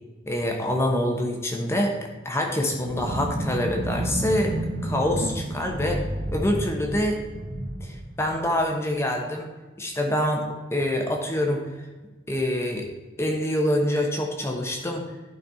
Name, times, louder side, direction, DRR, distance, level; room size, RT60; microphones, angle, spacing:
voice 1, 0.3-1.9 2.2-4.6 4.8-6.0 6.3-7.2 7.8-9.5 9.8-11.6 12.3-12.9 13.2-15.0, left 1 dB, 15° left, 2 dB, 1.0 m, -25 dB
sound 1, 2.8-8.8, right 1 dB, 50° right, 1.2 m, -31 dB
11.5 x 5.4 x 4.1 m, 1.2 s
head